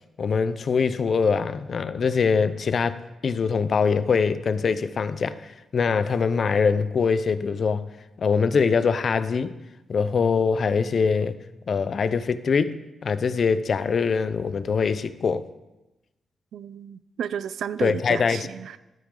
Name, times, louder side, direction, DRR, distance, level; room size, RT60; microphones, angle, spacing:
voice 1, 0.2-3.0 3.2-7.9 8.2-9.5 9.9-11.4 11.7-15.4 17.8-18.5, left 5 dB, 55° left, 13 dB, 0.7 m, -23 dB
voice 2, 16.5-18.8, right 8 dB, 80° right, 15 dB, 0.5 m, -32 dB
13.0 x 12.5 x 3.9 m, 1.0 s
cardioid pair, 95°, 0 cm